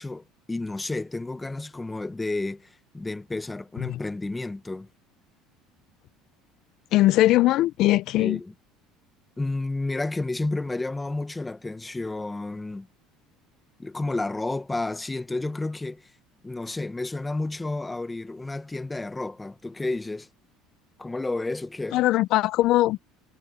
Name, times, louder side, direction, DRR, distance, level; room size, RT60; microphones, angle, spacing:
voice 1, 0.0-4.9 8.2-8.5 9.4-12.9 13.8-16.1 16.4-20.3 21.0-22.0, left 2 dB, 10° left, 0.9 m, -31 dB
voice 2, 6.9-8.4 21.9-23.0, left 16 dB, 55° left, 0.4 m, -20 dB
cardioid pair, 150°, 0 cm